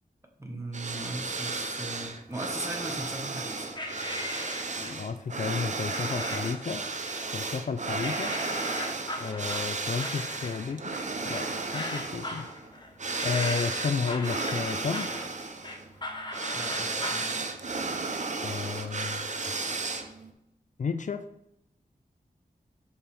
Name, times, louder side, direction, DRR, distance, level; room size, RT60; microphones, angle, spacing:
voice 1, 0.4-3.7 7.9-8.1 16.5-17.3, right 1 dB, 20° right, 3 dB, 1.3 m, -38 dB
sound 1, 0.7-20.3, right 3 dB, 50° right, 0.8 m, -34 dB
sound 2, 3.8-5.1 5.9-6.7 7.1-7.7 8.0-17.3, left 1 dB, 30° left, 1.1 m, -39 dB
voice 2, 4.8-6.8 7.3-8.3 9.2-11.0 11.2-12.5 13.2-15.2 18.4-19.3 20.8-21.2, left 5 dB, 55° left, 9 dB, 0.4 m, -32 dB
7.0 x 5.4 x 3.4 m, 0.82 s
wide cardioid pair, 80°, 16 cm